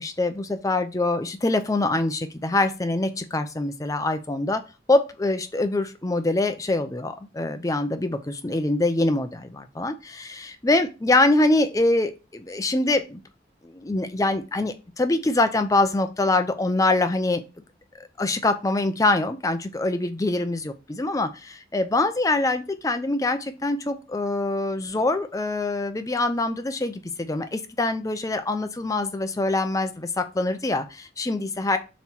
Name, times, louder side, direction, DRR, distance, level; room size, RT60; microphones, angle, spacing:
voice 1, 0.0-4.6 4.9-13.2 13.6-17.4 18.0-31.8, left 2 dB, 20° left, 8 dB, 0.5 m, -24 dB
7.1 x 3.0 x 4.3 m, 0.30 s
head